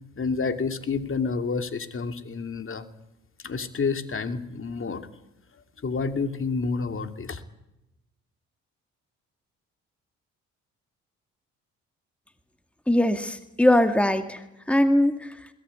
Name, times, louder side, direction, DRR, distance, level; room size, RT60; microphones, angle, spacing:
voice 1, 0.2-2.8 3.4-5.1 5.8-7.4, left 4 dB, 40° left, 8 dB, 2.7 m, -29 dB
voice 2, 12.9-15.5, left 1 dB, 5° left, 8 dB, 2.1 m, -22 dB
21.5 x 17.0 x 9.6 m, 0.91 s
supercardioid pair, 65°, 31 cm